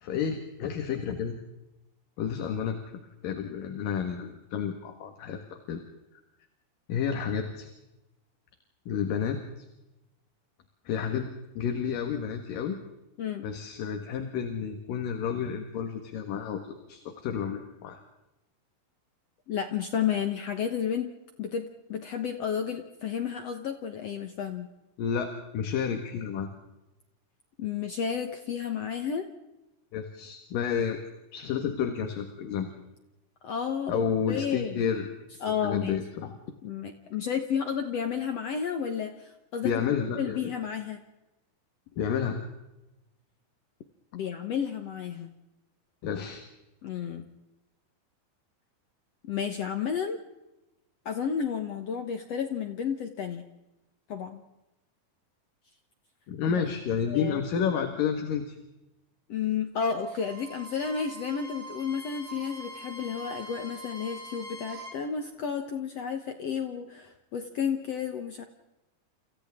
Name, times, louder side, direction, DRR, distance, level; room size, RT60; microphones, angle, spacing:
voice 1, 0.0-1.4 2.2-5.8 6.9-7.7 8.9-9.7 10.9-12.8 13.4-18.0 25.0-26.5 29.9-31.0 31.3-32.7 33.9-35.1 35.6-36.4 39.6-40.5 42.0-42.5 46.0-46.4 56.3-58.6, left 7 dB, 75° left, 5 dB, 3.3 m, -31 dB
voice 2, 19.5-21.1 21.4-24.7 27.6-29.3 33.4-34.8 35.4-36.0 36.6-39.7 40.1-41.0 44.1-45.3 46.8-47.3 49.3-50.2 51.1-53.5 54.1-54.4 57.1-57.4 59.3-68.4, left 7 dB, 60° left, 6 dB, 1.9 m, -32 dB
Bowed string instrument, 60.0-65.0, right 1 dB, 35° right, 6.0 m, -44 dB
29.5 x 28.0 x 3.7 m, 0.97 s
omnidirectional pair, 4.0 m